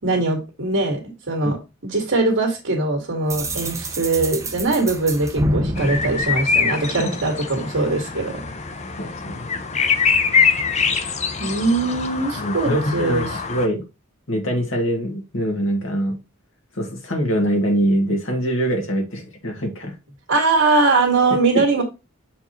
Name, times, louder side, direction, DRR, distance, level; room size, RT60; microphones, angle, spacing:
voice 1, 0.0-1.0 1.3-1.6 1.8-8.4 11.4-13.4 20.3-21.8, right 3 dB, 65° right, -1 dB, 1.9 m, -21 dB
sound 1, 3.3-7.2, right 1 dB, 15° right, 0.7 m, -27 dB
sound 2, 5.8-13.7, left 5 dB, 35° left, 0.7 m, -23 dB
voice 2, 9.0-9.5 12.4-13.8 14.3-16.2 16.8-19.9 21.5-21.8, equal, 65° left, 1 dB, 1.9 m, -23 dB
6.8 x 4.6 x 3.0 m, 0.26 s
head